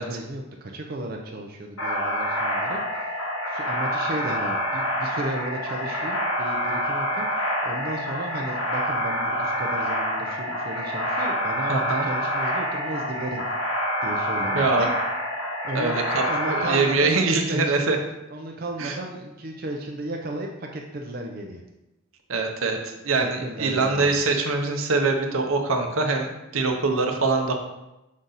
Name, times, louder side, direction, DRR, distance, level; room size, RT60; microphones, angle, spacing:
voice 1, 0.0-3.0 3.5-13.4 14.0-14.9 15.6-16.0 16.3-17.9 18.3-21.6 23.1-24.2, right 1 dB, 45° right, 1 dB, 0.5 m, -34 dB
sound 1, 1.8-16.8, equal, 85° left, 1.4 m, -27 dB
voice 2, 11.7-12.1 14.5-14.9 15.7-18.0 18.8-19.0 22.3-27.6, right 3 dB, 75° right, 4 dB, 0.8 m, -23 dB
6.1 x 4.0 x 4.0 m, 0.95 s
head